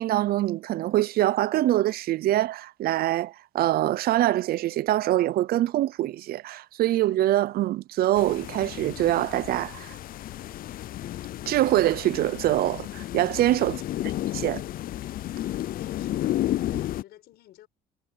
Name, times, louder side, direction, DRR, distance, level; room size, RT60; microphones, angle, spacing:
voice 1, 0.0-10.0 11.5-13.7 14.4-14.6, right 14 dB, 65° right, 0.6 m, -24 dB
sound 1, 8.2-17.0, left 13 dB, 60° left, 0.5 m, -32 dB
voice 2, 13.7-14.1 15.7-17.7, left 14 dB, 75° left, 6.0 m, -51 dB
cardioid pair, 110°, 17 cm